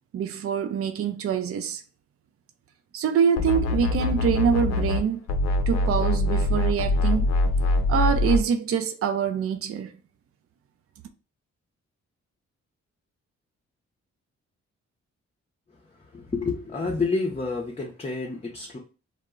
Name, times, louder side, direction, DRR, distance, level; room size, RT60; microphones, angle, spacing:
voice 1, 0.1-1.8 2.9-5.2 5.7-7.3 7.9-9.9, right 7 dB, 50° right, 0.5 m, -25 dB
sound 1, 3.4-5.0 5.3-8.4, left 2 dB, 65° left, 0.5 m, -23 dB
voice 2, 16.1-18.8, left 3 dB, 20° left, 0.6 m, -29 dB
2.1 x 2.0 x 3.6 m
supercardioid pair, 55°, 29 cm